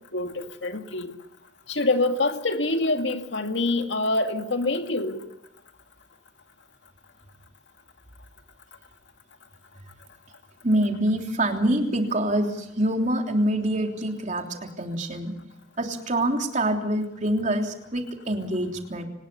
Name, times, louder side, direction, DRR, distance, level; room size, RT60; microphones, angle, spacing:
voice 1, 0.1-1.1 1.7-5.2, left 2 dB, 75° left, 6 dB, 2.2 m, -25 dB
voice 2, 10.6-15.3 15.8-19.0, right 1 dB, 40° right, 3 dB, 3.3 m, -25 dB
24.5 x 20.0 x 6.9 m, 0.84 s
head